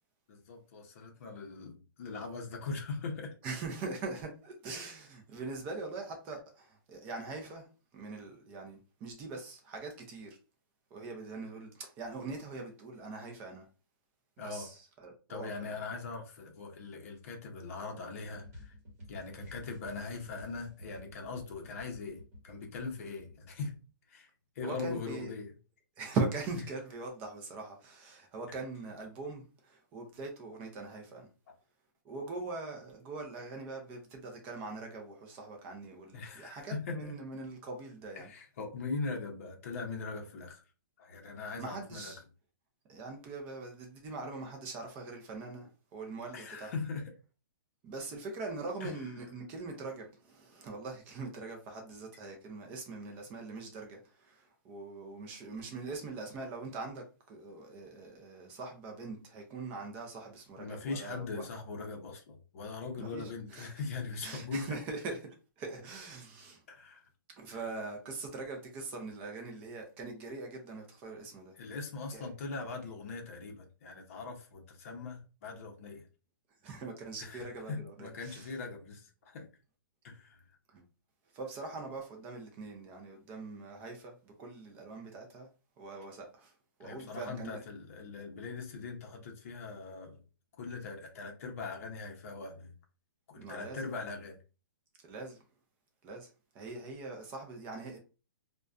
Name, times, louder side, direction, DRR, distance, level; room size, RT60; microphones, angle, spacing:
voice 1, 0.3-3.3 14.4-14.7 15.3-18.7 19.1-23.8 24.1-24.3 24.6-25.5 31.5-31.6 36.1-37.1 38.2-40.6 41.0-42.1 46.3-47.0 48.8-48.9 60.6-64.8 66.7-67.0 71.6-76.1 77.2-79.5 80.0-80.4 86.8-90.2 90.6-92.7 93.3-94.4, left 4 dB, 40° left, 0.7 m, -41 dB
voice 2, 3.4-7.7 7.9-10.4 10.9-13.7 14.4-15.8 24.6-25.3 26.0-31.3 32.0-38.3 41.6-42.2 42.9-46.7 47.8-61.4 63.0-63.9 64.2-65.2 65.6-66.6 67.3-71.5 72.1-72.3 76.6-78.6 80.7-80.8 81.3-85.5 85.8-86.5 86.8-87.6 93.4-93.9 95.0-95.4 96.0-98.0, right 3 dB, 15° right, 0.4 m, -42 dB
sound 1, 18.3-23.9, left 1 dB, 40° right, 1.1 m, -52 dB
2.4 x 2.1 x 2.3 m
hypercardioid pair, 170°, 12 cm